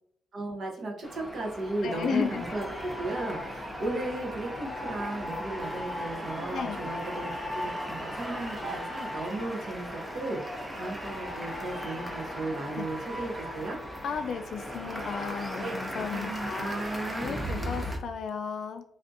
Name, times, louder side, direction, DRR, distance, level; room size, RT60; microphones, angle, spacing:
voice 1, 0.3-13.8 15.6-17.3, right 2 dB, 50° right, 1 dB, 0.7 m, -35 dB
sound 1, 1.0-18.0, equal, 5° right, 0.5 m, -37 dB
voice 2, 1.8-2.4 6.5-6.9 12.7-12.8 14.0-16.8 17.2-18.8, left 6 dB, 60° left, 7 dB, 0.3 m, -34 dB
3.4 x 2.4 x 2.5 m, 0.68 s
cardioid pair, 150°, 0 cm